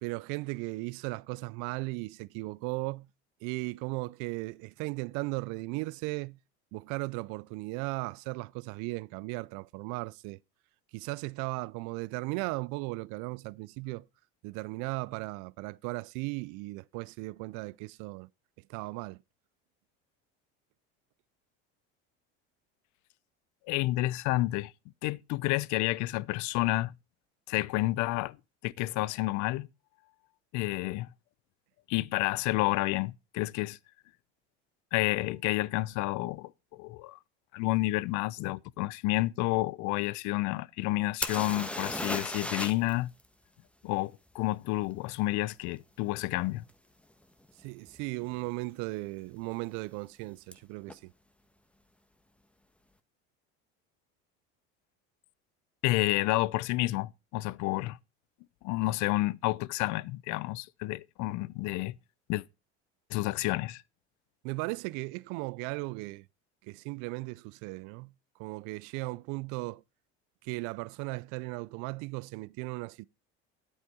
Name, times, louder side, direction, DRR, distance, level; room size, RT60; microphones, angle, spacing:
voice 1, 0.0-3.1 3.4-6.4 6.7-10.4 10.9-14.0 14.4-18.3 18.7-19.2 47.6-51.1 64.4-66.3 66.6-68.1 68.4-69.8 70.4-73.1, right 24 dB, 70° right, 0.5 m, -36 dB
voice 2, 23.7-24.7 25.0-26.9 27.5-28.4 28.6-29.7 30.5-31.1 31.9-33.8 34.9-37.2 37.5-43.1 43.8-46.6 55.8-58.0 58.6-62.0 62.3-62.4 63.1-63.8, left 19 dB, 65° left, 0.6 m, -30 dB
sound 1, 41.2-42.9 43.2-43.3 46.7-46.8 47.4-47.6 47.9-48.5 50.5-50.6 50.9-51.0, left 1 dB, 5° left, 1.3 m, -35 dB
9.6 x 8.6 x 5.5 m
supercardioid pair, 90°, 31 cm